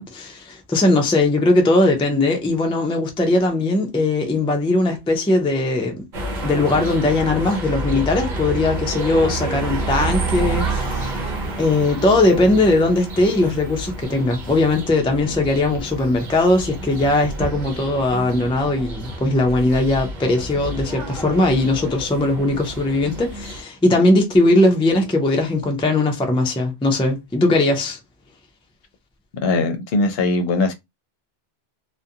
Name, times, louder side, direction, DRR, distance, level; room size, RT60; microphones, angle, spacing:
voice 1, 0.0-6.0 6.4-28.0, left 2 dB, 10° left, 0.3 m, -19 dB
sound 1, 6.1-23.6, right 2 dB, 50° right, 0.7 m, -29 dB
voice 2, 29.4-30.7, left 3 dB, 70° left, 0.8 m, -20 dB
2.4 x 2.1 x 2.7 m
omnidirectional pair, 1.1 m